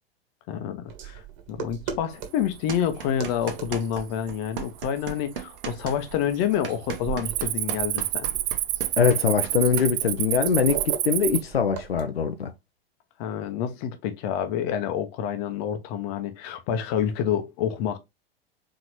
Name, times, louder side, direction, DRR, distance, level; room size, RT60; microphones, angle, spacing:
voice 1, 0.5-1.2 1.5-8.3 13.2-18.0, left 9 dB, 40° left, 0.9 m, -28 dB
sound 1, 0.9-12.0, right 8 dB, 45° right, 1.5 m, -40 dB
Cricket, 2.4-2.9 3.3-3.7 4.3-4.4 5.1-5.7 5.9-6.2 6.5-11.4, right 15 dB, 30° right, 0.4 m, -28 dB
sound 2, 2.7-4.0 4.3-9.9, right 7 dB, 60° right, 1.2 m, -36 dB
voice 2, 9.0-12.5, left 6 dB, 75° left, 0.7 m, -23 dB
4.2 x 3.8 x 3.1 m
figure-of-eight pair, 90°, 30 cm